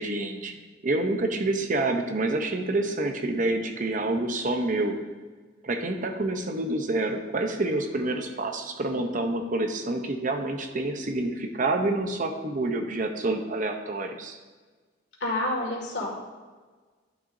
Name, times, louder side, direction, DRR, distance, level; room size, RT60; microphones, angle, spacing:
voice 1, 0.0-4.9 5.6-14.4, right 2 dB, 45° right, 4 dB, 0.7 m, -28 dB
voice 2, 15.2-16.2, left 1 dB, 65° left, -2 dB, 2.1 m, -29 dB
11.0 x 6.8 x 2.6 m, 1.4 s
head